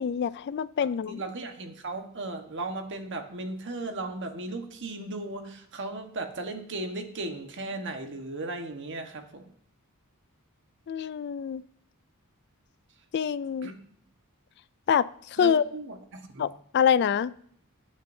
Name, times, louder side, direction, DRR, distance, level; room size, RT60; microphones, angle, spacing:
voice 1, 0.0-1.2 10.9-11.6 13.1-13.7 14.9-15.6 16.4-17.3, left 7 dB, 50° left, 17 dB, 0.3 m, -26 dB
voice 2, 0.8-9.5 13.6-13.8 15.4-16.5, right 2 dB, 55° right, 5 dB, 1.3 m, -36 dB
20.5 x 8.9 x 2.7 m, 0.65 s
head